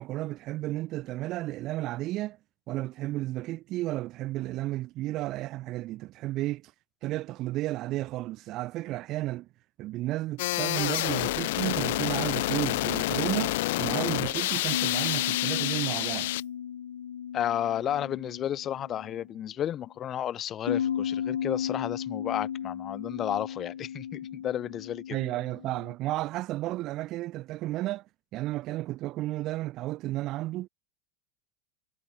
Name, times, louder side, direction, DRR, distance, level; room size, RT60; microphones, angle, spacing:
voice 1, 0.0-2.4 2.7-6.7 7.0-9.5 9.8-16.3 25.1-28.1 28.3-30.7, right 17 dB, 45° right, 0.4 m, -33 dB
sound 1, 10.4-16.4, left 18 dB, 65° left, 0.4 m, -28 dB
sound 2, 14.7-19.3 20.7-25.9, left 9 dB, 85° left, 0.8 m, -35 dB
voice 2, 17.3-25.2, left 10 dB, 35° left, 1.5 m, -32 dB
hypercardioid pair, 95°, 0 cm